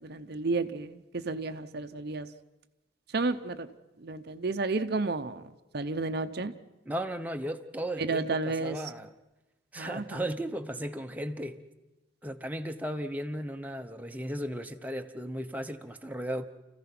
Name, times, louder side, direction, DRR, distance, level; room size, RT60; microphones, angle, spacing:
voice 1, 0.0-2.3 3.1-3.7 4.0-5.4 5.7-6.5 8.0-8.9 9.8-10.2, right 3 dB, 55° right, 0.7 m, -32 dB
voice 2, 6.9-9.1 9.7-11.6 12.2-16.5, equal, 10° right, 0.8 m, -35 dB
29.0 x 15.0 x 6.0 m
head